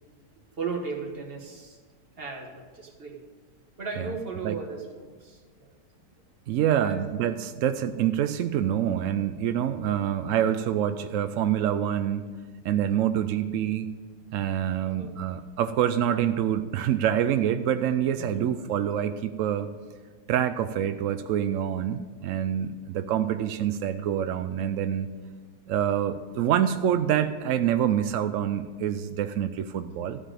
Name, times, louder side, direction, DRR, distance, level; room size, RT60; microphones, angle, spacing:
voice 1, 0.6-1.8 2.2-3.2 3.8-5.7 6.8-7.0 14.8-15.1 18.2-18.5, right 4 dB, 35° right, 1 dB, 1.7 m, -36 dB
voice 2, 6.5-12.3 12.6-13.9 14.3-19.7 20.3-25.1 25.7-30.2, right 10 dB, 80° right, 9 dB, 0.7 m, -26 dB
14.0 x 4.9 x 8.9 m, 1.4 s
omnidirectional pair, 1.9 m